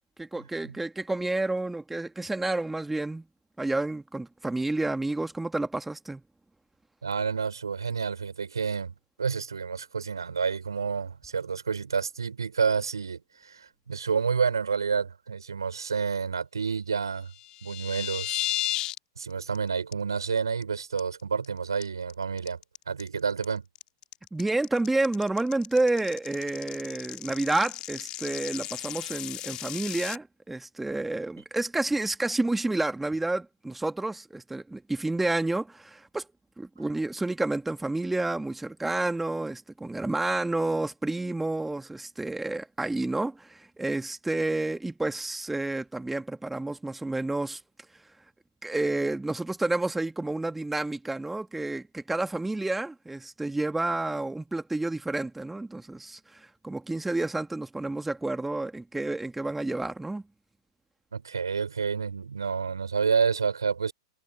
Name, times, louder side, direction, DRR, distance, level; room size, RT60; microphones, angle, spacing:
voice 1, 0.2-3.3 3.6-6.2 24.3-36.3 36.6-47.6 47.9-48.0 48.6-60.2, right 2 dB, 5° right, 2.4 m, -30 dB
voice 2, 7.0-17.3 17.6-18.5 19.2-22.6 22.9-23.6 61.1-63.9, right 5 dB, 75° right, 4.6 m, -29 dB
sound 1, 17.3-19.0 19.3-19.6 19.9-20.0 20.4-20.6 21.0-21.5 21.8-30.2, left 15 dB, 35° left, 3.1 m, -35 dB
figure-of-eight pair, 100°, 2 cm